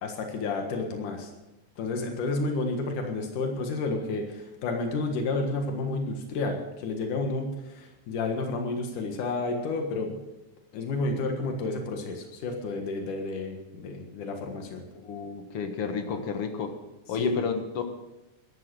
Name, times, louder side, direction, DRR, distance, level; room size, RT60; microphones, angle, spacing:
voice 1, 0.0-1.3 1.8-10.2 10.7-14.9 15.8-16.2 17.2-17.5, left 3 dB, 90° left, 3 dB, 3.1 m, -31 dB
voice 2, 15.0-16.8 17.1-17.9, left 5 dB, 55° left, 6 dB, 2.1 m, -31 dB
13.5 x 12.0 x 6.3 m, 0.98 s
omnidirectional pair, 3.5 m